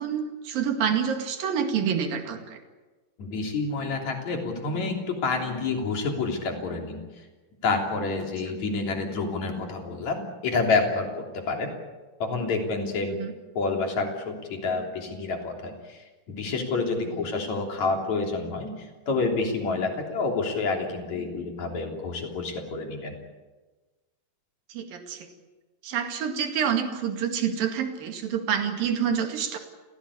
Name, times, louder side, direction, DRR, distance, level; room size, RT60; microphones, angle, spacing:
voice 1, 0.0-2.6 13.1-13.3 17.1-17.2 24.7-25.3 25.8-29.6, right 7 dB, 75° right, 5 dB, 3.9 m, -27 dB
voice 2, 3.2-7.0 7.6-11.7 12.2-13.2 13.5-16.0 16.3-23.2, left 3 dB, 50° left, 2 dB, 4.5 m, -28 dB
29.0 x 17.0 x 8.6 m, 1.2 s
omnidirectional pair, 4.2 m